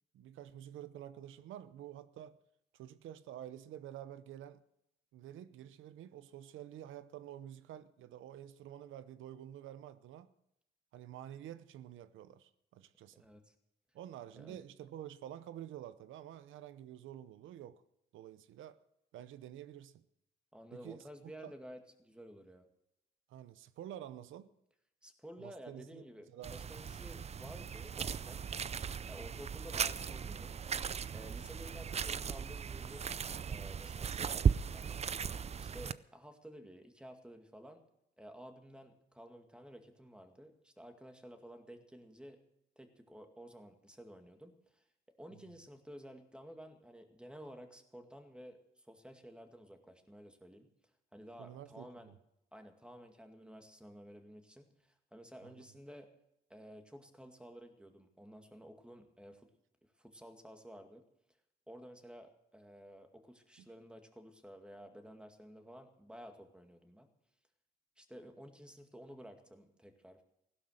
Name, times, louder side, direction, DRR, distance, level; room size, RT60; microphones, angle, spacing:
voice 1, 0.1-2.4 2.7-4.6 5.1-10.3 10.9-13.2 13.9-17.8 18.1-18.8 19.1-20.0 20.7-21.0 21.4-21.5 23.3-24.5 25.4-26.0 26.3-26.6 45.3-45.5 51.4-52.2 55.4-55.6 63.6-63.7, right 11 dB, 80° right, 0.8 m, -49 dB
voice 2, 13.2-13.5 14.4-14.6 20.5-22.7 25.0-28.4 29.1-30.6 31.1-33.1 33.5-35.0 35.6-37.8 38.2-42.4 42.8-44.8 45.2-50.7 51.1-52.1 52.5-56.1 56.5-59.5 60.0-61.0 61.7-67.1 68.0-70.2, equal, 5° right, 2.2 m, -53 dB
sound 1, 26.4-35.9, right 7 dB, 35° right, 0.5 m, -37 dB
16.0 x 12.0 x 6.5 m
cardioid pair, 90°, 20 cm